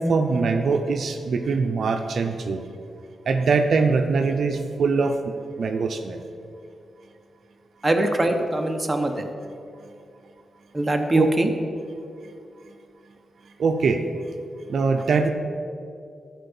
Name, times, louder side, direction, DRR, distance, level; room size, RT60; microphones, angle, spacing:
voice 1, 0.0-2.6 3.3-6.2 11.2-11.3 13.6-14.0 14.7-15.3, right 4 dB, 65° right, 5 dB, 0.6 m, -22 dB
voice 2, 7.8-9.2 10.7-11.5, right 1 dB, 15° right, 4 dB, 0.9 m, -22 dB
11.5 x 4.6 x 7.1 m, 2.5 s
cardioid pair, 100°, 0 cm